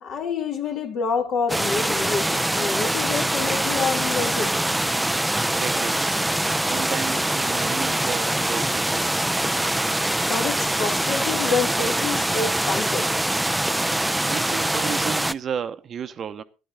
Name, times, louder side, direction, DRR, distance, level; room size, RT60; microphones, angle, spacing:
voice 1, 0.0-4.6 9.4-13.1, left 5 dB, 50° left, 1.8 m, -28 dB
sound 1, 1.5-15.3, right 1 dB, 5° right, 0.5 m, -24 dB
voice 2, 5.6-6.0 6.6-9.3 14.2-16.4, right 8 dB, 45° right, 0.8 m, -33 dB
12.0 x 10.5 x 4.0 m
hypercardioid pair, 60°, 0 cm